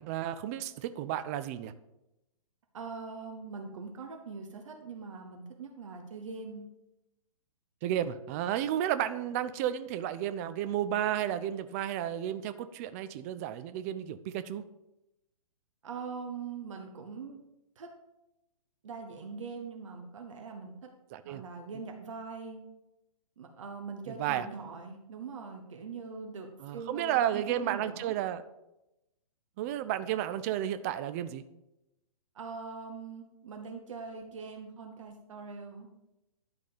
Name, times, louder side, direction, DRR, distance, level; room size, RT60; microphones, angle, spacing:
voice 1, 0.0-1.7 7.8-14.6 21.1-21.4 24.1-24.5 26.6-28.4 29.6-31.4, right 11 dB, 25° right, 11 dB, 0.4 m, -32 dB
voice 2, 2.7-6.7 15.8-17.4 17.8-17.9 18.8-20.9 21.2-22.6 23.4-28.1 32.3-36.1, right 5 dB, 55° right, 3 dB, 1.2 m, -42 dB
11.0 x 4.1 x 5.1 m, 0.92 s
figure-of-eight pair, 120°, 19 cm